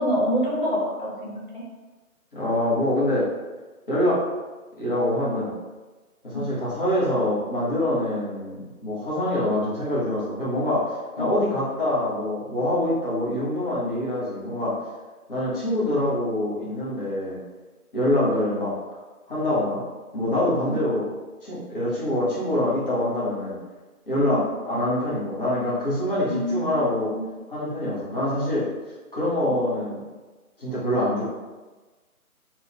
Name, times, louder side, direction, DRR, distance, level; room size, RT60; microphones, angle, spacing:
voice 1, 0.0-1.6 6.3-6.5 11.2-11.3 18.2-18.3 20.6-20.8 24.3-24.4 26.3-26.7 27.1-27.2, equal, 35° left, -5 dB, 0.7 m, -26 dB
voice 2, 2.3-3.3 3.9-4.2 4.8-5.5 6.2-14.7 15.3-17.4 17.9-18.7 19.3-19.8 20.1-21.1 21.4-23.6 24.1-27.1 27.5-28.7 29.1-30.0 30.6-31.2, left 1 dB, ahead, -8 dB, 0.8 m, -25 dB
4.1 x 2.2 x 4.4 m, 1.2 s
hypercardioid pair, 175°, 44 cm